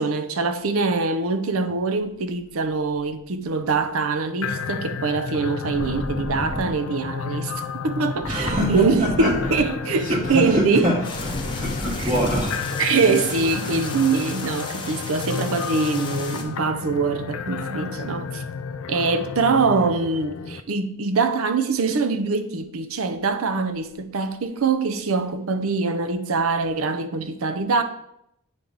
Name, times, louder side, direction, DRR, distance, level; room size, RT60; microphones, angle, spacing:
voice 1, 0.0-7.5 7.8-10.9 12.8-18.4 18.9-27.8, right 4 dB, 75° right, 0.6 m, -23 dB
sound 1, 4.4-20.6, left 5 dB, 75° left, 0.4 m, -32 dB
sound 2, 5.7-13.8, equal, 10° right, 0.9 m, -33 dB
voice 2, 8.3-9.5 9.9-12.8, equal, 30° right, 1.5 m, -25 dB
sound 3, 11.0-16.4, left 4 dB, 25° left, 0.7 m, -35 dB
9.4 x 3.1 x 3.9 m
head